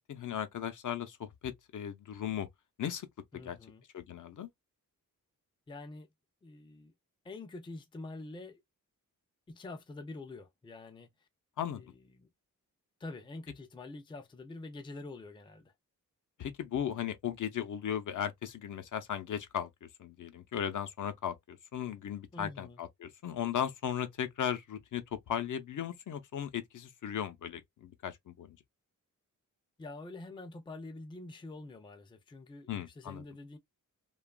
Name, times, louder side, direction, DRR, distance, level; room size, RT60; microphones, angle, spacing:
voice 1, 0.1-2.5 2.8-3.1 3.3-3.6 3.9-4.5 11.6-11.8 16.4-19.7 20.0-28.6 32.7-33.2, left 9 dB, 65° left, 0.6 m, -37 dB
voice 2, 3.3-3.8 5.7-6.1 6.4-6.9 7.2-8.6 9.5-11.3 11.8-12.3 13.0-15.7 22.3-22.8 29.8-33.6, left 2 dB, 15° left, 0.4 m, -46 dB
2.8 x 2.3 x 2.2 m
wide cardioid pair, 130°, 33 cm